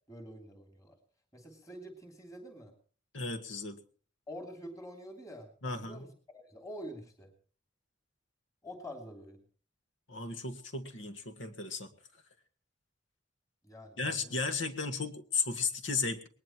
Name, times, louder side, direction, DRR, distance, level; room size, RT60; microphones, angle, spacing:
voice 1, 0.1-1.0 1.3-2.7 4.3-5.5 5.8-7.3 8.6-9.4 13.6-14.3, equal, 20° left, 3 dB, 3.0 m, -46 dB
voice 2, 3.1-3.8 5.6-6.1 10.1-11.9 14.0-16.3, left 4 dB, 80° left, 8 dB, 1.9 m, -35 dB
20.5 x 19.5 x 3.0 m, 0.41 s
head